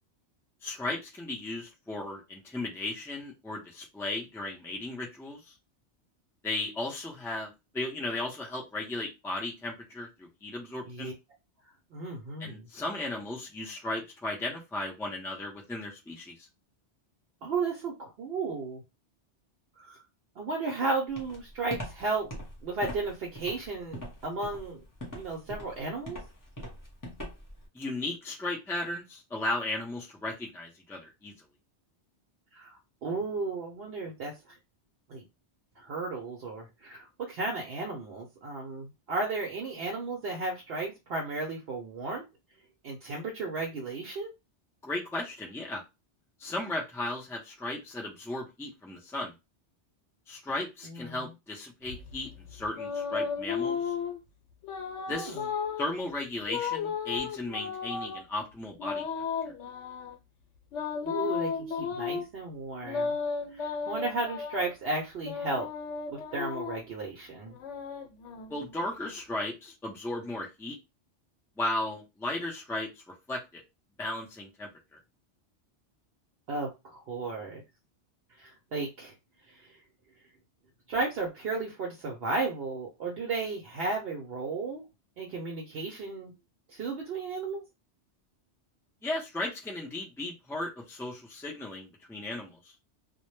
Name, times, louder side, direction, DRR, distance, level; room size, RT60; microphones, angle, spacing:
voice 1, 0.6-5.5 6.4-11.1 12.4-16.5 27.7-31.3 44.8-45.8 46.4-49.3 50.3-53.9 55.1-55.4 55.8-59.0 68.5-70.8 71.6-72.9 73.3-73.6 74.0-75.0 89.0-92.7, left 2 dB, 5° left, -1 dB, 0.3 m, -35 dB
voice 2, 11.9-12.7 17.4-18.8 19.8-20.0 20.4-22.3 22.6-24.8 25.1-26.2 32.5-34.6 35.1-35.2 35.8-42.2 42.8-44.3 50.8-51.2 55.1-55.4 61.1-63.2 63.5-65.7 66.1-67.6 76.5-77.6 78.4-79.1 79.5-79.8 80.9-84.8 85.2-86.3 86.7-87.6, right 3 dB, 65° right, 0 dB, 0.8 m, -34 dB
Walk footsteps, 21.2-27.6, equal, 20° left, 0.8 m, -41 dB
sound 1, 51.9-54.2 54.6-55.9 56.5-58.2 58.8-60.1 60.7-62.3 62.8-64.7 65.2-66.9 67.5-68.8, left 6 dB, 90° left, 1.0 m, -34 dB
2.1 x 2.1 x 3.0 m, 0.24 s
omnidirectional pair, 1.2 m